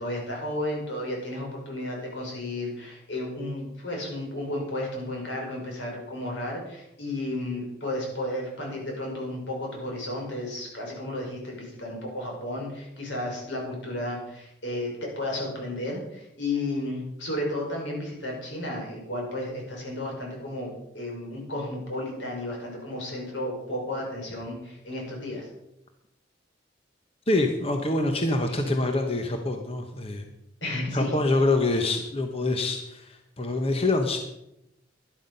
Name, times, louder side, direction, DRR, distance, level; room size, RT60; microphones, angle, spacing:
voice 1, 0.0-25.5 30.6-31.2, left 1 dB, 85° left, -1 dB, 5.7 m, -33 dB
voice 2, 27.3-30.2 30.9-34.2, left 2 dB, 30° left, 4 dB, 1.1 m, -25 dB
12.0 x 11.5 x 5.5 m, 0.85 s
head